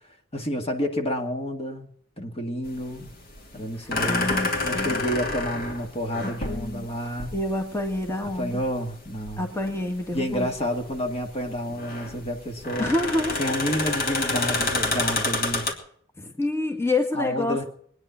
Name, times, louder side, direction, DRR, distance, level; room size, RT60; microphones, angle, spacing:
voice 1, 0.3-1.9 2.2-3.1 3.5-4.3 4.6-7.3 8.2-9.5 10.1-12.9 13.4-15.7 17.1-17.7, equal, 30° left, 4 dB, 2.0 m, -29 dB
sound 1, 2.6-15.7, left 3 dB, 50° left, 2.8 m, -29 dB
voice 2, 4.1-5.0 6.2-6.9 7.3-8.6 9.4-10.5 12.8-13.4 16.2-17.7, left 2 dB, 15° left, 3 dB, 1.8 m, -27 dB
22.5 x 10.0 x 5.7 m, 0.64 s
head